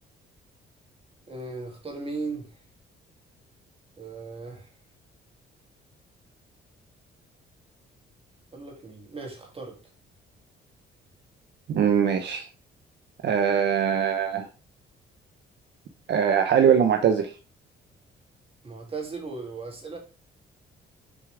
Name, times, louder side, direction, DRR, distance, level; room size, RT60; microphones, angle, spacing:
voice 1, 1.3-2.6 4.0-4.7 8.5-9.8 18.6-20.0, right 3 dB, 30° right, 2.6 m, -37 dB
voice 2, 11.7-12.5 13.2-14.5 16.1-17.3, right 8 dB, 60° right, 0.8 m, -22 dB
7.2 x 4.6 x 3.3 m
cardioid pair, 90°, 20 cm